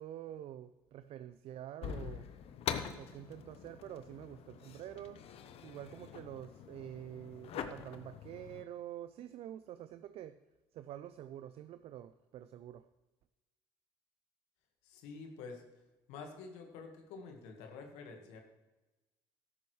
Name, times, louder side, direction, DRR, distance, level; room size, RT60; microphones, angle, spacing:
voice 1, 0.0-2.3 3.0-5.2 5.6-10.4 10.7-12.9, right 11 dB, 60° right, 12 dB, 0.5 m, -47 dB
sound 1, 1.8-8.6, left 8 dB, 60° left, 0.9 m, -44 dB
voice 2, 14.8-15.6 16.1-18.4, left 4 dB, 75° left, 4 dB, 1.6 m, -48 dB
13.0 x 11.0 x 3.2 m, 1.1 s
hypercardioid pair, 60°, 11 cm